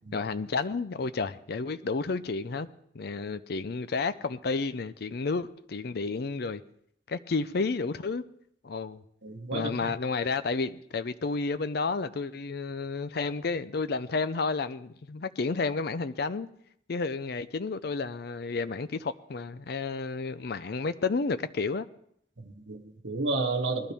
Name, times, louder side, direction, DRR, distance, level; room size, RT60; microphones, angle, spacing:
voice 1, 0.1-2.7 2.9-6.6 7.1-8.2 8.6-9.0 9.5-16.5 16.9-21.9, left 4 dB, 60° left, 0.5 m, -31 dB
voice 2, 9.2-9.9 22.4-23.9, right 3 dB, 85° right, 1.1 m, -31 dB
20.0 x 12.5 x 3.5 m
head